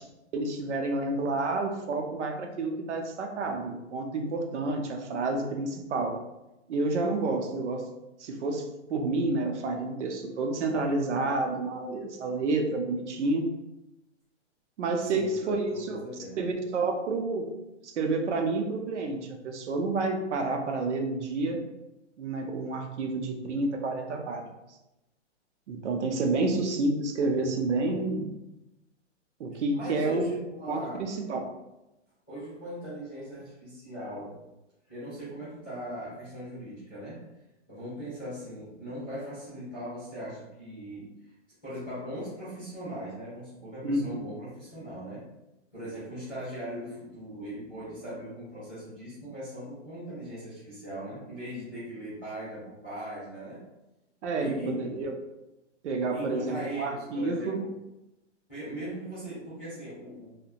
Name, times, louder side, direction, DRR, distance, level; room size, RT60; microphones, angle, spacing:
voice 1, 0.3-6.2 6.7-7.8 8.2-13.5 14.8-16.0 16.4-17.5 17.8-21.6 22.2-24.5 25.7-28.3 29.4-30.3 30.7-31.4 43.8-44.2 54.2-55.1 55.8-57.6, right 3 dB, 75° right, 3 dB, 0.6 m, -29 dB
voice 2, 15.1-16.5 29.7-31.1 32.3-34.4 34.9-37.3 37.7-41.1 41.6-45.3 45.7-53.6 54.4-54.9 56.1-57.7 58.5-60.4, equal, 10° left, -19 dB, 0.4 m, -39 dB
2.7 x 2.1 x 2.4 m, 0.95 s
hypercardioid pair, 170°, 35 cm